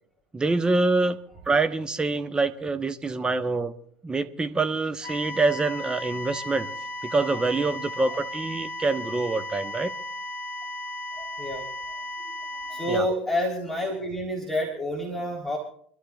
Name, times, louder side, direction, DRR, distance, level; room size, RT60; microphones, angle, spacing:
voice 1, 0.3-1.2 1.5-3.7 4.0-6.7 7.0-9.9 12.9-13.1, right 3 dB, 15° right, 9 dB, 1.0 m, -25 dB
sound 1, 5.0-13.0, left 1 dB, 40° left, 1.3 m, -35 dB
voice 2, 11.2-12.0 12.5-15.6, left 1 dB, 5° left, -2 dB, 3.6 m, -29 dB
28.0 x 13.0 x 2.4 m, 0.64 s
figure-of-eight pair, 75°, 5 cm